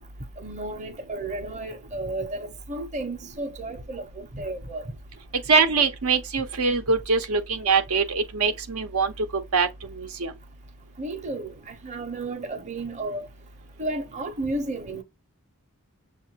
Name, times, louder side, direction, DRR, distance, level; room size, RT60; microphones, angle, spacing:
voice 1, 0.4-4.9 11.0-13.3 13.8-15.0, right 2 dB, 35° right, 0.8 m, -33 dB
voice 2, 5.5-9.1 9.5-9.7 10.0-10.3, right 4 dB, 85° right, 0.8 m, -23 dB
6.6 x 2.5 x 2.9 m
head